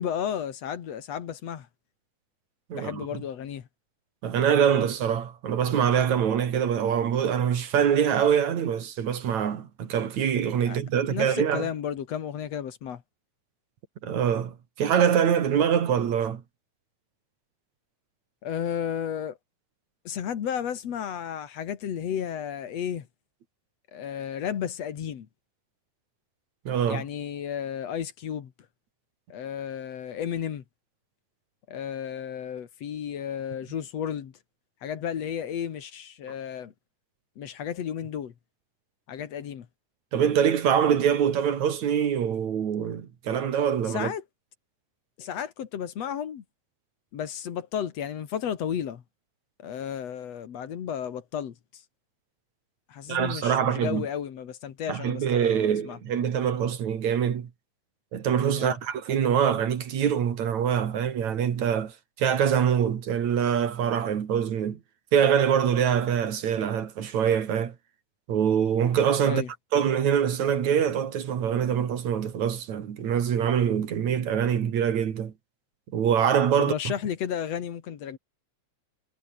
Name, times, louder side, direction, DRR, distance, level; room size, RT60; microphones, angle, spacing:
voice 1, 0.0-1.7 2.7-3.7 10.6-10.8 11.0-13.0 18.4-19.4 20.0-23.1 23.9-25.3 26.9-28.5 29.3-30.6 31.7-34.3 34.8-36.7 37.4-38.3 39.1-39.7 43.8-44.2 45.2-46.4 47.1-49.0 49.6-51.6 52.9-56.0 58.5-58.8 69.3-69.5 76.6-78.2, left 8 dB, 65° left, 2.8 m, -33 dB
voice 2, 2.7-3.0 4.2-11.7 14.0-16.4 26.6-27.0 40.1-44.1 53.1-54.1 54.9-57.5 58.1-64.8 65.1-67.7 68.3-69.4 69.7-75.3 75.9-76.9, right 8 dB, 70° right, 3.4 m, -24 dB
omnidirectional pair, 3.4 m